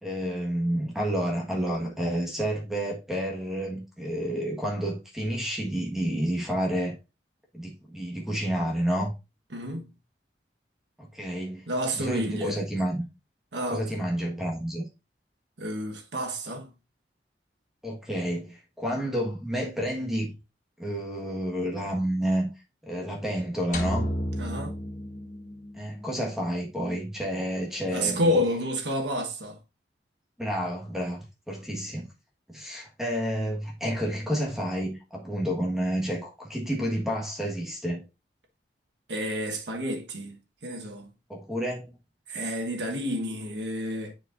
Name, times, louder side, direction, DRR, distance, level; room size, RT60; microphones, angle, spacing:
voice 1, 0.0-7.0 7.5-9.1 11.0-11.7 11.9-13.0 13.7-14.9 17.8-20.3 20.8-22.5 22.8-24.1 25.7-28.4 30.4-32.1 32.5-38.0 41.3-41.9, equal, ahead, 1.5 m, -30 dB
voice 2, 9.5-9.9 11.7-12.6 13.5-13.9 15.6-16.7 24.4-24.8 27.9-29.6 39.1-41.1 42.3-44.1, equal, 85° right, 1.4 m, -30 dB
sound 1, 23.7-26.0, equal, 45° left, 1.3 m, -32 dB
9.5 x 4.7 x 2.6 m
head